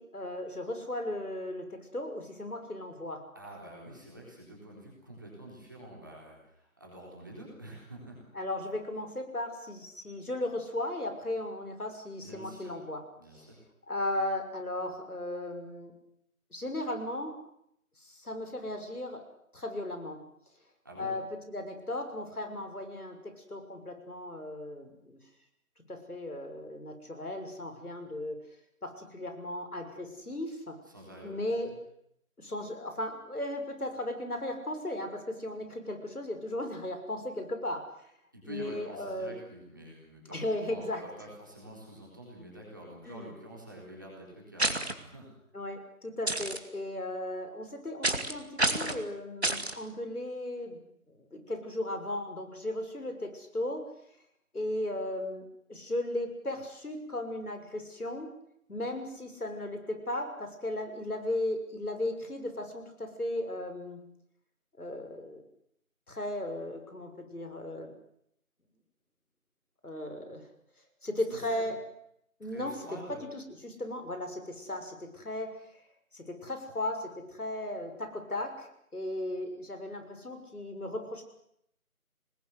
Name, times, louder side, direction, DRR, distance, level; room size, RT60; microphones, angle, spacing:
voice 1, 0.0-3.2 8.3-13.0 13.3-13.5 13.9-15.9 16.5-17.4 18.0-19.2 19.5-20.2 21.0-21.2 21.5-25.2 25.9-28.4 28.8-30.8 31.2-31.7 32.4-37.8 38.4-39.4 40.3-41.0 43.1-43.3 45.5-50.8 51.1-53.8 54.5-55.4 55.7-58.3 58.7-64.0 64.8-65.4 66.1-67.9 69.8-70.4 71.0-71.8 72.4-72.7 73.3-75.5 76.1-81.2, left 1 dB, 80° left, 6 dB, 6.3 m, -36 dB
voice 2, 3.3-8.2 12.2-12.8 13.2-13.6 20.8-21.1 30.8-31.3 31.6-31.7 38.3-45.3 71.3-71.7 72.4-73.2, right 1 dB, 15° right, -3 dB, 3.8 m, -47 dB
sound 1, 44.6-44.9 46.3-46.6 48.0-48.3 48.6-49.0 49.4-49.7, right 2 dB, 45° right, 2.4 m, -28 dB
26.0 x 20.5 x 8.1 m, 0.73 s
figure-of-eight pair, 180°, 44 cm